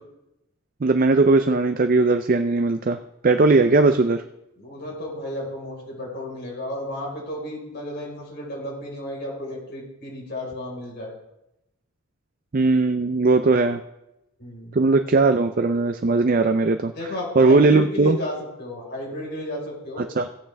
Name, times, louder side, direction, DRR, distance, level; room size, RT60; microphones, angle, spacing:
voice 1, 0.8-3.0 3.2-4.2 12.5-13.8 14.7-16.9 17.4-18.2 20.2-20.3, right 3 dB, 40° right, 8 dB, 0.4 m, -18 dB
voice 2, 3.6-3.9 4.6-11.1 14.4-14.8 16.9-20.0, left 2 dB, 50° left, -2 dB, 4.7 m, -33 dB
16.5 x 8.5 x 3.4 m, 0.88 s
head